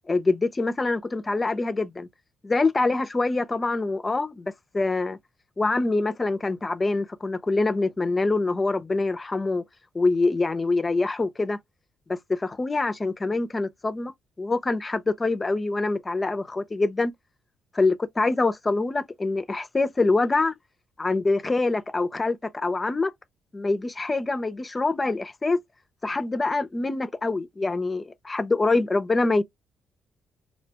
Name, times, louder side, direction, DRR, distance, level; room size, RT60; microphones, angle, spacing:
voice 1, 0.1-2.1 2.4-5.2 5.6-9.6 9.9-11.6 12.1-14.1 14.4-17.1 17.7-20.5 21.0-23.1 23.5-25.6 26.0-29.4, left 3 dB, 25° left, 0.4 m, -25 dB
2.6 x 2.1 x 2.7 m
cardioid pair, 90°, 0 cm